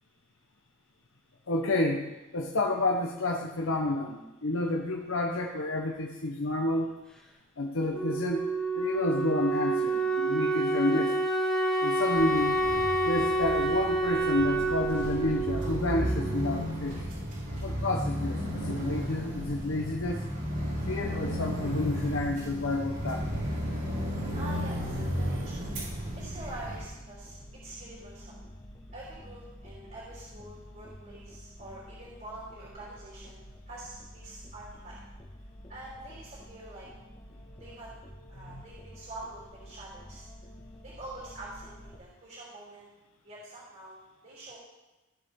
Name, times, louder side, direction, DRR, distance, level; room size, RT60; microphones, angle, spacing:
voice 1, 1.5-2.0 2.3-6.9 7.6-8.4 8.8-11.2 11.8-12.6 13.0-17.0 17.6-20.2 20.9-23.2 38.4-38.6, left 2 dB, 75° left, 1 dB, 0.9 m, -30 dB
Wind instrument woodwind instrument, 7.9-16.6, right 2 dB, 5° left, 1.8 m, -28 dB
sound 1, 12.2-26.8, equal, 65° right, 4.2 m, -34 dB
sound 2, 23.4-42.0, equal, 20° left, 1.4 m, -49 dB
voice 2, 24.3-25.6 26.1-27.4 27.6-28.3 28.9-35.0 35.7-36.9 37.6-37.9 38.3-40.3 40.8-42.9 43.2-44.6, right 2 dB, 45° right, -7 dB, 3.3 m, -45 dB
16.5 x 7.0 x 3.7 m, 1.1 s
head